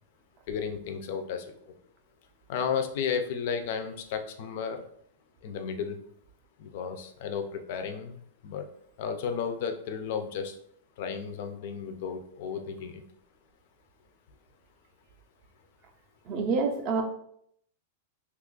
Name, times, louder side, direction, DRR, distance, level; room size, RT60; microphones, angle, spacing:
voice 1, 0.5-1.4 2.5-4.8 5.4-6.0 6.6-8.1 8.4-8.7 9.0-10.5 11.0-13.0, left 6 dB, 40° left, 7 dB, 0.4 m, -33 dB
voice 2, 16.3-17.0, right 4 dB, 25° right, 4 dB, 0.4 m, -27 dB
2.8 x 2.3 x 3.7 m, 0.69 s
supercardioid pair, 180°, 0 cm